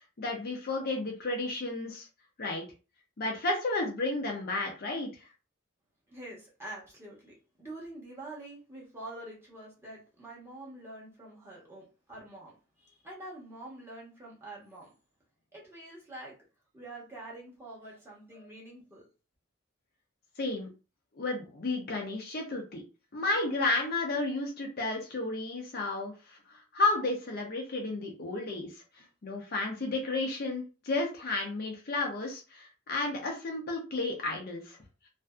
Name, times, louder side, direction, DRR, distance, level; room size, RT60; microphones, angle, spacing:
voice 1, 0.2-2.1 2.4-2.6 3.2-5.3 20.4-20.7 21.1-22.8 23.1-34.8, left 2 dB, 50° left, 1 dB, 0.6 m, -32 dB
voice 2, 6.1-14.9 15.5-16.4 16.7-19.1, right 1 dB, 10° right, -5 dB, 1.0 m, -46 dB
2.6 x 2.5 x 2.3 m, 0.32 s
head